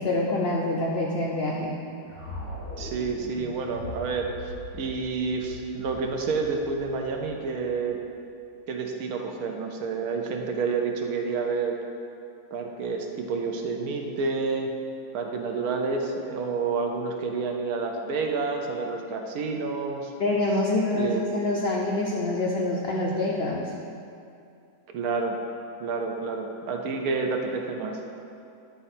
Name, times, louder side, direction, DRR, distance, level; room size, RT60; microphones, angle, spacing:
voice 1, 0.0-1.8 20.2-23.7, left 2 dB, 75° left, -2 dB, 0.5 m, -26 dB
sound 1, 2.0-8.1, left 1 dB, 45° left, 1.8 m, -41 dB
voice 2, 2.8-4.3 4.7-8.0 8.7-11.8 12.5-14.7 15.1-20.1 20.9-21.2 24.9-25.4 25.8-28.0, right 4 dB, 70° right, 2 dB, 1.1 m, -29 dB
9.6 x 3.9 x 4.2 m, 2.6 s
omnidirectional pair, 1.8 m